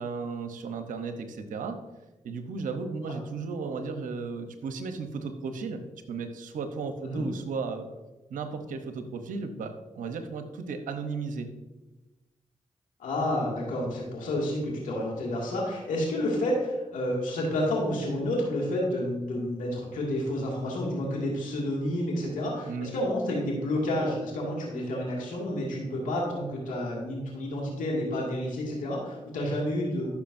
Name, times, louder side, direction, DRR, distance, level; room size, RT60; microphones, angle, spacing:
voice 1, 0.0-1.8 2.2-5.8 6.1-7.9 8.3-11.5 22.7-22.9, right 4 dB, 85° right, 8 dB, 0.8 m, -35 dB
voice 2, 13.0-30.1, left 1 dB, 90° left, -2 dB, 2.1 m, -30 dB
13.0 x 6.0 x 2.6 m, 1.1 s
supercardioid pair, 45°, 13 cm